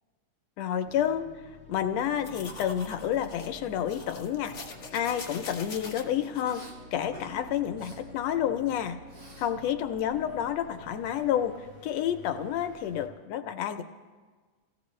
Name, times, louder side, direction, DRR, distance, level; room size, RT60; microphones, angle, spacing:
voice 1, 0.6-1.3 1.7-4.6 4.9-9.0 9.4-13.8, left 10 dB, 75° left, 8 dB, 1.6 m, -30 dB
sound 1, 0.8-13.1, left 1 dB, 45° right, 2.7 m, -50 dB
sound 2, 2.2-6.5, left 3 dB, 45° left, 0.9 m, -44 dB
Respiratory sounds, 6.5-6.7 7.1-7.4 7.7-8.0 8.4-9.5 9.8-11.2, right 1 dB, 75° right, 6.8 m, -51 dB
27.0 x 16.0 x 3.1 m, 1.4 s
omnidirectional pair, 3.4 m